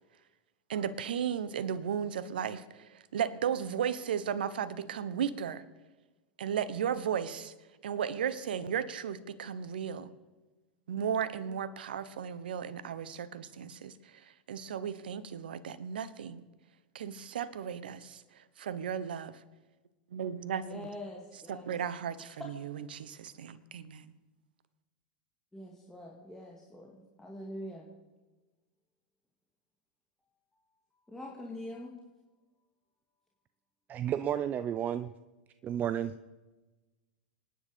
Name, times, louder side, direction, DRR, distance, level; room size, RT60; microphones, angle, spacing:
voice 1, 0.7-5.6 6.4-7.5 7.8-10.1 10.9-13.9 14.5-16.4 16.9-19.4 20.1-20.9 21.5-24.1, right 8 dB, 75° right, 14 dB, 1.1 m, -35 dB
voice 2, 20.6-21.7 22.4-22.5 25.5-27.9 31.1-32.0, left 1 dB, 10° left, -2 dB, 2.5 m, -44 dB
voice 3, 33.9-35.1 35.6-36.3, right 10 dB, 35° right, 12 dB, 0.6 m, -32 dB
25.5 x 10.5 x 5.3 m, 1.2 s
hypercardioid pair, 95°, 5 cm